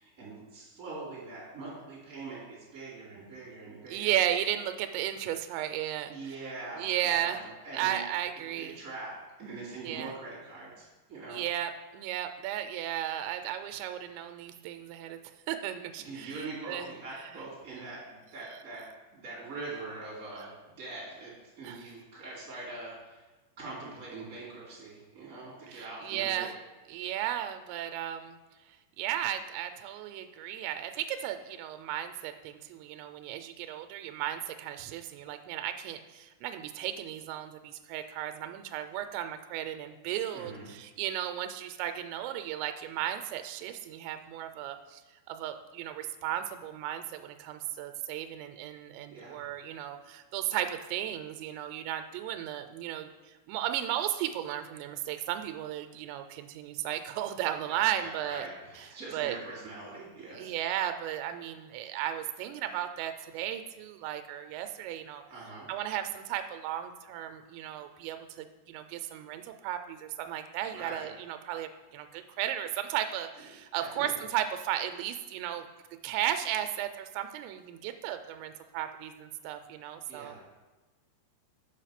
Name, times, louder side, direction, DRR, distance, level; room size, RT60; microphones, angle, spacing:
voice 1, 0.0-4.1 6.1-8.0 8.6-11.4 16.0-18.8 19.1-23.2 23.6-26.6 40.3-40.7 49.1-49.4 57.6-60.5 65.3-65.7 70.7-71.1 73.4-73.5 73.8-74.2 80.1-80.4, right 3 dB, 20° right, -7 dB, 2.7 m, -43 dB
voice 2, 3.9-6.1 6.8-7.4 7.7-8.8 9.8-10.1 11.3-15.2 15.5-16.9 21.6-21.8 25.7-26.5 26.9-28.4 29.0-45.0 45.3-53.1 53.5-58.5 59.1-59.4 60.4-65.2 65.7-75.7 76.0-80.4, right 11 dB, 90° right, 8 dB, 2.8 m, -35 dB
6.9 x 5.3 x 5.8 m, 1.2 s
omnidirectional pair, 5.1 m